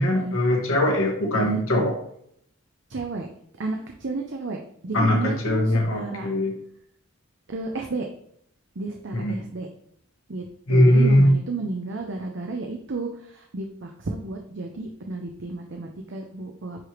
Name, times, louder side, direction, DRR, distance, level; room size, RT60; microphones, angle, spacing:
voice 1, 0.0-1.9 4.9-6.5 9.1-9.4 10.7-11.3, left 1 dB, 75° left, 1 dB, 1.5 m, -20 dB
voice 2, 2.9-3.3 3.6-6.3 7.5-8.1 8.8-9.7 10.3-16.9, right 3 dB, 60° right, 2 dB, 0.6 m, -32 dB
9.7 x 3.3 x 3.0 m, 0.70 s
head